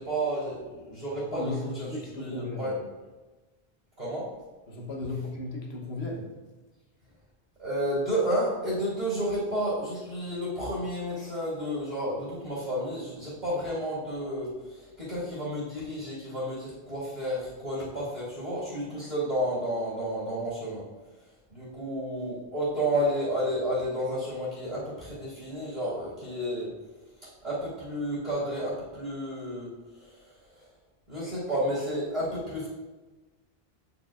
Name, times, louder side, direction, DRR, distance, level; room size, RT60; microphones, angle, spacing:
voice 1, 0.0-1.9 2.2-2.7 4.0-4.3 7.6-20.8 21.5-26.7 27.2-30.7 31.1-32.7, equal, 45° right, -9 dB, 2.1 m, -31 dB
voice 2, 1.3-2.8 4.7-6.3, left 2 dB, 80° left, -1 dB, 1.3 m, -35 dB
8.2 x 4.9 x 2.4 m, 1.2 s
omnidirectional pair, 1.0 m